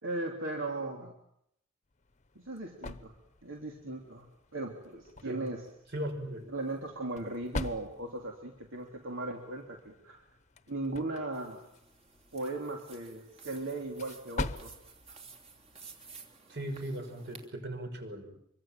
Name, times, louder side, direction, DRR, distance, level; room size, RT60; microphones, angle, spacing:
voice 1, 0.0-1.1 2.3-3.1 3.4-5.6 6.5-10.2 10.7-11.6 12.3-14.7, right 2 dB, 75° right, 1 dB, 3.2 m, -38 dB
sound 1, 1.9-16.4, left 2 dB, 35° left, 1.0 m, -45 dB
voice 2, 5.9-6.5 16.5-18.4, right 1 dB, 55° right, 6 dB, 6.2 m, -38 dB
sound 2, 11.3-17.5, right 5 dB, 30° right, 3.1 m, -54 dB
26.0 x 24.5 x 7.6 m, 0.75 s
head